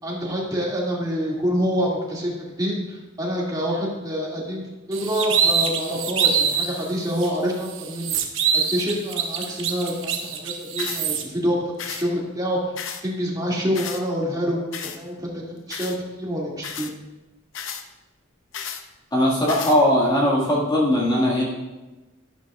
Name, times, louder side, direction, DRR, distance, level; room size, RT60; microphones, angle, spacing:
voice 1, 0.0-4.6 4.9-8.2 8.5-12.7 13.0-15.3 15.7-16.9, equal, 20° right, -4 dB, 2.3 m, -26 dB
sound 1, 4.9-6.7 7.2-7.3 7.7-11.2, right 7 dB, 65° right, 1.0 m, -24 dB
sound 2, 10.8-11.0 11.8-12.1 12.8-13.0 13.7-14.0 14.7-15.0 15.7-16.0 16.6-16.9 17.5-17.8 18.5-18.8 19.5-19.8, left 7 dB, 60° left, 0.7 m, -33 dB
voice 2, 19.1-21.4, left 1 dB, 20° left, -5 dB, 1.8 m, -19 dB
12.0 x 10.5 x 2.4 m, 1.1 s
head